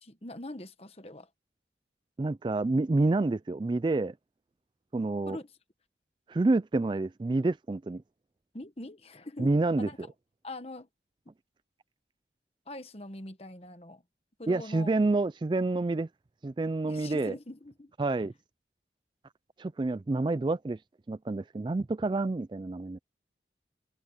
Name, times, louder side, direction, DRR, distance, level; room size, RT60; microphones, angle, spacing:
voice 1, 0.0-1.3 5.3-5.5 8.5-10.0 10.4-10.9 12.7-14.0 14.4-15.0 16.9-17.9, left 2 dB, 35° left, 1.4 m, -43 dB
voice 2, 2.2-4.1 4.9-5.4 6.3-8.0 9.4-10.1 14.5-16.1 16.4-17.3 18.0-18.3 19.6-20.8 21.1-23.0, right 2 dB, 25° right, 0.3 m, -28 dB
head